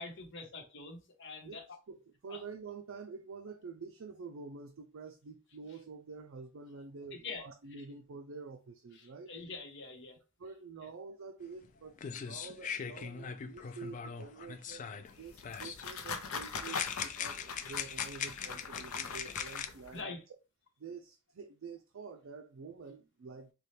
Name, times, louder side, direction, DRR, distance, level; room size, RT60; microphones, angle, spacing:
voice 1, 0.0-1.6 2.3-2.4 7.1-7.8 8.9-10.2 19.9-20.2, left 3 dB, 60° left, 0.9 m, -45 dB
voice 2, 1.9-9.3 10.4-20.0 20.8-23.5, right 5 dB, 65° right, 0.4 m, -48 dB
sound 1, 11.6-11.7 12.0-15.1 15.4-15.9 16.5-19.7, left 7 dB, 35° left, 0.3 m, -40 dB
sound 2, 15.1-20.0, left 5 dB, 85° left, 0.6 m, -42 dB
4.1 x 2.3 x 3.3 m
head